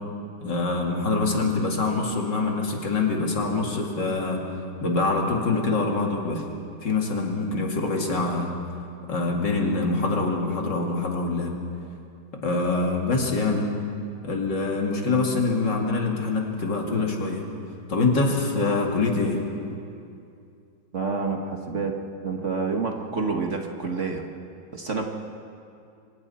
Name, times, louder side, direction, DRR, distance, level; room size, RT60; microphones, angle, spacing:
voice 1, 0.4-4.4 4.8-6.4 6.8-8.5 9.1-11.6 12.4-13.7 14.2-17.4 17.9-19.4, left 3 dB, 70° left, 0 dB, 3.1 m, -25 dB
voice 2, 20.9-21.9 22.2-24.2 24.7-25.0, right 4 dB, 45° right, 2 dB, 1.6 m, -28 dB
28.5 x 25.0 x 4.3 m, 2.5 s
omnidirectional pair, 2.0 m